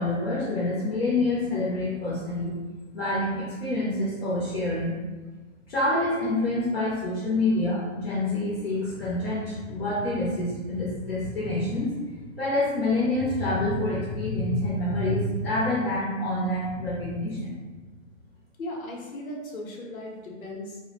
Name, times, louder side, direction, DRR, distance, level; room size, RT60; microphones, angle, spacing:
voice 1, 0.0-2.5 2.9-4.9 5.7-11.9 12.4-17.5, left 2 dB, 50° left, -7 dB, 0.7 m, -27 dB
voice 2, 18.6-20.8, left 1 dB, 90° left, -1 dB, 0.8 m, -37 dB
2.2 x 2.0 x 3.0 m, 1.3 s
hypercardioid pair, 155°, 40 cm